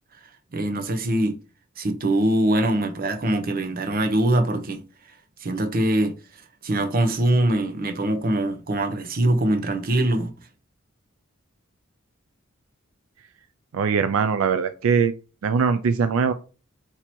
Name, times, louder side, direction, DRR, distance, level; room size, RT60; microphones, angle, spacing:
voice 1, 0.5-1.3 1.8-4.8 5.4-6.1 6.6-10.3, right 1 dB, 45° right, 0.7 m, -23 dB
voice 2, 13.7-15.1 15.4-16.3, right 5 dB, 80° right, 0.4 m, -21 dB
4.5 x 2.8 x 4.2 m
head